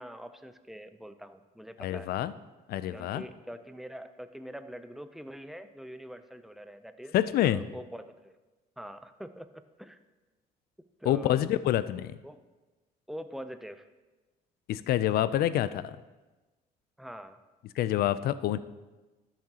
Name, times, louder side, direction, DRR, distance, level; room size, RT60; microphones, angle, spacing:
voice 1, 0.0-2.1 2.9-7.1 7.4-8.4 8.8-10.0 11.0-11.5 12.2-12.4 13.1-13.9 17.0-17.4, equal, ahead, 10 dB, 0.5 m, -44 dB
voice 2, 1.8-2.3 2.7-3.2 7.1-7.6 11.1-12.2 14.7-16.0 17.8-18.6, left 12 dB, 65° left, 15 dB, 0.4 m, -27 dB
13.0 x 7.4 x 2.9 m, 1.2 s
cardioid pair, 110°, 17 cm